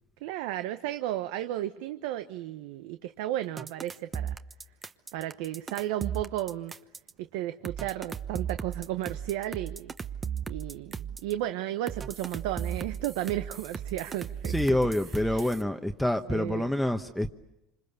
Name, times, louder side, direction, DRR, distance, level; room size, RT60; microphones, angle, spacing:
voice 1, 0.2-4.3 5.1-6.7 7.2-9.9 10.5-14.5 15.2-15.5 16.3-16.7, right 13 dB, 80° right, 10 dB, 0.9 m, -34 dB
sound 1, 3.6-7.1 7.6-11.3 11.9-15.6, right 7 dB, 25° right, 1.0 m, -36 dB
voice 2, 14.5-17.3, left 1 dB, 5° left, 5 dB, 1.0 m, -27 dB
26.5 x 26.5 x 6.9 m, 0.88 s
supercardioid pair, 110°, 0 cm